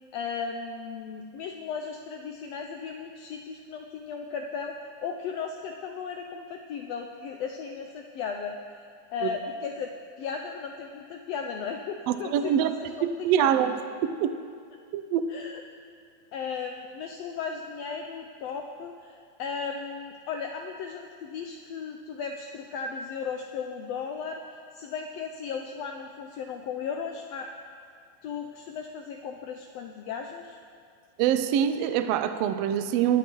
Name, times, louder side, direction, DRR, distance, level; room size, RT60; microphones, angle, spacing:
voice 1, 0.1-8.6 9.1-9.9 10.2-12.9 13.4-13.7 15.3-15.6 16.3-27.5 28.2-30.6, left 6 dB, 85° left, 3 dB, 1.4 m, -36 dB
voice 2, 12.1-12.7 13.0-13.7 14.2-14.3 14.9-15.2 31.2-33.2, right 10 dB, 80° right, 9 dB, 1.4 m, -24 dB
20.5 x 9.5 x 3.0 m, 2.3 s
omnidirectional pair, 3.5 m